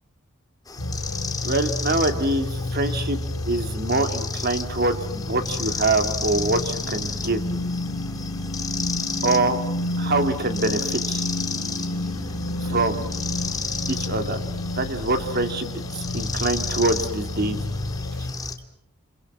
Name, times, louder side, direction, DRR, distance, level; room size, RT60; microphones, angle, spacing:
sound 1, 0.7-18.6, left 5 dB, 15° left, 1.9 m, -34 dB
sound 2, 0.8-18.3, left 1 dB, 90° left, 2.9 m, -30 dB
voice 1, 1.4-7.4 9.2-9.6 10.0-11.2 12.7-13.1 13.9-14.4 14.8-15.8 16.1-17.6, right 2 dB, 45° right, 8 dB, 2.4 m, -24 dB
29.0 x 26.0 x 6.1 m, 0.75 s
head